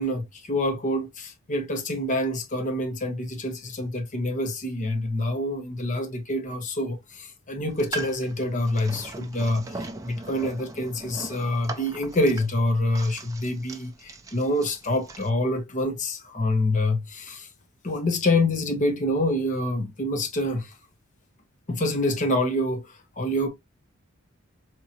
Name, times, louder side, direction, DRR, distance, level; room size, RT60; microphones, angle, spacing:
voice 1, 0.0-17.5 17.8-20.7 21.7-23.5, left 1 dB, 35° left, 0.8 m, -26 dB
sound 1, 7.7-15.3, right 2 dB, 15° right, 0.4 m, -40 dB
3.6 x 2.9 x 2.8 m
head